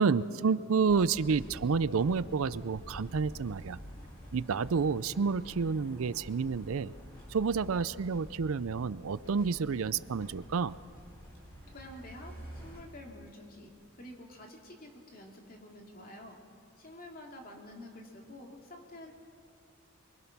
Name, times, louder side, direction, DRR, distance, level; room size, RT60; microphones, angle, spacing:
voice 1, 0.0-3.8 4.3-6.9 7.3-10.8, right 5 dB, 70° right, 16 dB, 0.5 m, -29 dB
sound 1, 0.9-12.8, equal, 20° left, 5.8 m, -49 dB
voice 2, 11.7-16.4 16.8-19.1, left 1 dB, 40° left, 1 dB, 2.6 m, -49 dB
24.0 x 23.0 x 6.0 m, 2.5 s
head